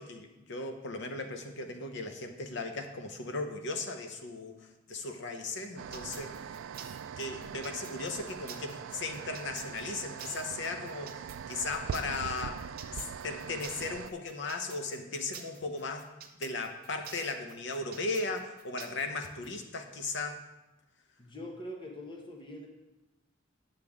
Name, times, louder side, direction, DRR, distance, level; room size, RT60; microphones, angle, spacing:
voice 1, 0.0-6.4 7.2-12.6 12.9-16.1 16.4-20.4, left 3 dB, 65° left, 6 dB, 0.9 m, -37 dB
sound 1, 5.8-14.1, right 7 dB, 75° right, 0.3 m, -42 dB
sound 2, 5.9-19.5, right 8 dB, 50° right, 0.7 m, -49 dB
voice 2, 21.2-22.7, left 1 dB, 25° left, 1 dB, 1.0 m, -43 dB
9.9 x 6.5 x 3.6 m, 1.0 s
head